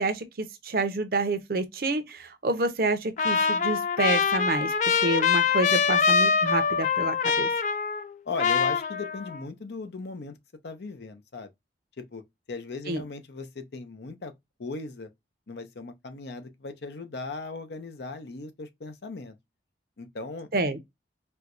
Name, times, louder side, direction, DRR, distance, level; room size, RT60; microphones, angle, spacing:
voice 1, 0.0-4.7 5.0-7.5 12.9-13.0 20.5-20.8, right 2 dB, 55° right, 0.6 m, -28 dB
Trumpet, 3.2-8.1 8.4-9.4, left 6 dB, 45° left, 0.3 m, -24 dB
voice 2, 8.3-10.3 10.6-11.5 12.0-12.2 12.5-14.3 14.6-15.1 15.5-19.3 20.0-20.5, left 3 dB, 70° left, 0.6 m, -37 dB
4.4 x 2.2 x 2.5 m
head